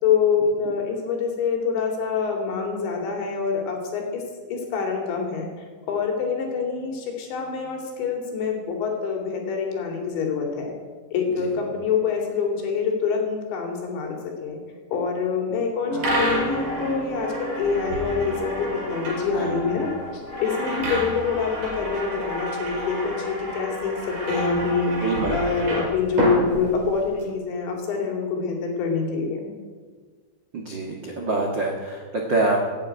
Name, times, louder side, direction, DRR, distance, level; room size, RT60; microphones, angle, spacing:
voice 1, 0.0-4.2 4.5-5.5 5.9-10.7 11.1-14.6 14.9-23.9 24.3-29.4, left 5 dB, 75° left, 1 dB, 4.9 m, -26 dB
sound 1, 15.9-22.9 23.2-23.3, right 1 dB, 15° right, 4.2 m, -36 dB
sound 2, 16.0-27.2, equal, 35° right, 5.4 m, -30 dB
voice 2, 19.3-19.7 25.0-25.6 30.5-32.7, right 2 dB, 65° right, 0 dB, 1.1 m, -26 dB
16.0 x 9.6 x 9.1 m, 1.5 s
omnidirectional pair, 5.3 m